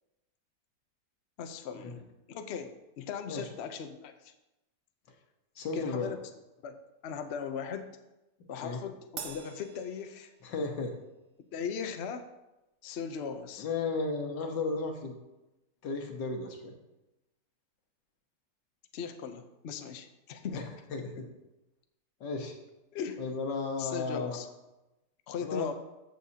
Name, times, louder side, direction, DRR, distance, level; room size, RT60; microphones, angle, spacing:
voice 1, 1.4-4.3 5.7-6.2 6.6-8.0 8.5-10.3 11.5-12.3 12.8-13.7 18.9-20.7 21.1-21.2 22.9-23.2 23.8-24.5 25.3-25.7, left 7 dB, 60° left, 8 dB, 0.7 m, -38 dB
voice 2, 5.6-6.1 8.6-8.8 10.4-10.9 13.6-15.2 15.8-16.8 20.5-20.6 20.9-21.3 22.2-22.6 23.2-24.4 25.4-25.7, left 3 dB, 75° left, 4 dB, 1.8 m, -34 dB
Crash cymbal, 9.2-10.8, right 7 dB, 65° right, 1.0 m, -45 dB
14.5 x 6.4 x 2.8 m, 0.99 s
omnidirectional pair, 1.9 m